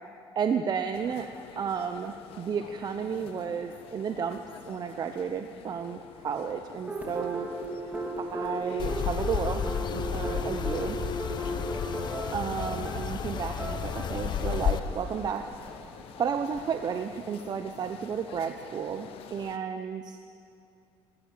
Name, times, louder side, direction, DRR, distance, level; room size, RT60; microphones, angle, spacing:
voice 1, 0.3-1.3 1.6-7.5 8.2-11.0 12.3-15.4 16.2-20.2, right 7 dB, 40° right, 7 dB, 1.0 m, -32 dB
sound 1, 0.9-19.6, left 9 dB, 70° left, 1.2 m, -49 dB
sound 2, 6.9-16.7, right 1 dB, 15° right, 4.0 m, -36 dB
sound 3, 8.8-14.8, left 8 dB, 45° left, 1.2 m, -32 dB
21.5 x 14.0 x 8.8 m, 2.6 s
cardioid pair, 105°, 10 cm